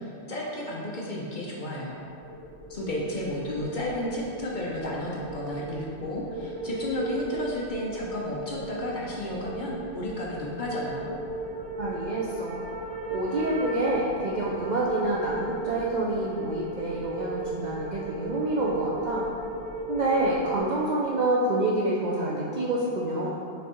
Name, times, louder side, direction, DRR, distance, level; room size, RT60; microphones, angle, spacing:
voice 1, 0.0-2.0 2.7-11.1, left 1 dB, 55° left, -4 dB, 0.6 m, -32 dB
sound 1, 2.0-20.6, right 2 dB, 90° right, 1.5 m, -36 dB
voice 2, 11.8-12.6 13.1-19.3 19.9-23.3, right 1 dB, 60° right, -5 dB, 0.4 m, -27 dB
5.1 x 3.4 x 2.9 m, 2.6 s
omnidirectional pair, 1.2 m